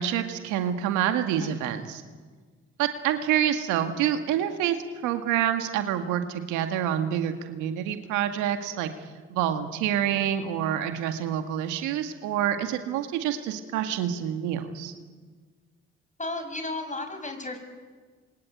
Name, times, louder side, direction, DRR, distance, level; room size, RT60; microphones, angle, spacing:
voice 1, 0.0-2.0 2.8-4.8 5.0-8.9 9.3-14.9, right 10 dB, 85° right, 7 dB, 2.0 m, -27 dB
voice 2, 16.2-17.6, left 2 dB, 25° left, 7 dB, 6.9 m, -34 dB
27.5 x 23.0 x 9.3 m, 1.5 s
hypercardioid pair, 50°, 29 cm